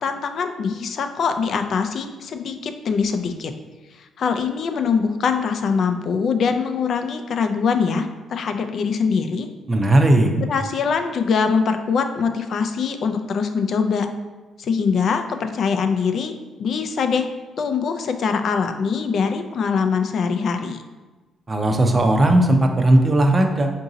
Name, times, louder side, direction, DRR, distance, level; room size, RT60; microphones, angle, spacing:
voice 1, 0.0-3.5 3.9-9.5 10.3-14.1 14.6-16.3 16.6-17.3 17.6-20.8, left 5 dB, 60° left, 7 dB, 0.4 m, -23 dB
voice 2, 9.7-10.3 21.5-23.7, right 1 dB, 25° right, 4 dB, 0.5 m, -17 dB
3.8 x 2.7 x 3.8 m, 1.2 s
cardioid pair, 90°, 0 cm